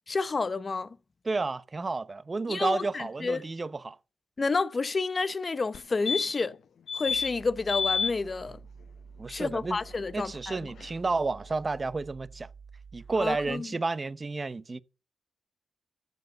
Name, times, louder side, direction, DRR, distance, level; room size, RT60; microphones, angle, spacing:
voice 1, 0.1-0.9 2.5-3.5 4.4-6.5 6.9-8.6 9.3-10.6 13.2-13.7, left 4 dB, 30° left, 0.8 m, -30 dB
voice 2, 1.2-4.0 9.2-9.8 10.1-12.5 12.9-14.8, right 3 dB, 25° right, 0.7 m, -31 dB
sound 1, 5.7-5.8 6.1-6.5 6.9-7.3 7.7-8.1 10.5-10.6 10.8-10.9, left 6 dB, 65° left, 0.6 m, -29 dB
sound 2, 7.1-13.5, right 5 dB, 65° right, 2.8 m, -49 dB
14.5 x 5.0 x 7.9 m
wide cardioid pair, 125°, 0 cm